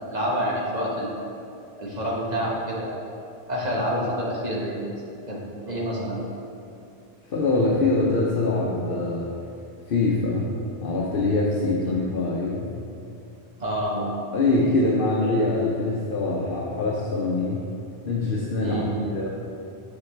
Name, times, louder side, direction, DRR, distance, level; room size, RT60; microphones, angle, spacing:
voice 1, 0.1-1.2 1.8-3.0 3.5-4.8 5.3-5.4 5.6-6.2 11.8-12.0 13.6-14.1 18.6-18.9, equal, 40° right, -5 dB, 1.5 m, -27 dB
voice 2, 7.3-9.3 9.9-10.5 10.8-12.8 14.3-17.7 18.1-18.8 19.1-19.3, left 2 dB, 65° left, -3 dB, 0.9 m, -24 dB
7.0 x 6.9 x 3.3 m, 2.7 s
omnidirectional pair, 1.0 m